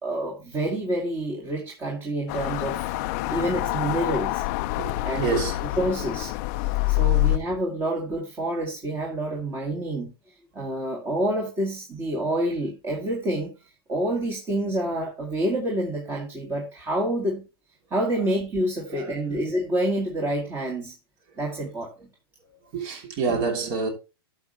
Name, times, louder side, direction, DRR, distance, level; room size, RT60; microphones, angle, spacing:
voice 1, 0.0-2.8 3.3-4.4 5.0-5.4 5.8-6.3 6.9-10.1 10.5-13.5 13.9-17.4 17.9-20.9 21.4-21.9, right 1 dB, 20° right, 2.1 m, -27 dB
sound 1, 2.3-7.4, left 19 dB, 40° left, 0.5 m, -26 dB
voice 2, 3.2-3.5 4.7-5.6 6.6-7.2 18.1-18.2 18.9-19.4 22.5-23.9, right 5 dB, 40° right, 3.0 m, -30 dB
11.5 x 6.8 x 3.1 m
hypercardioid pair, 135°, 13 cm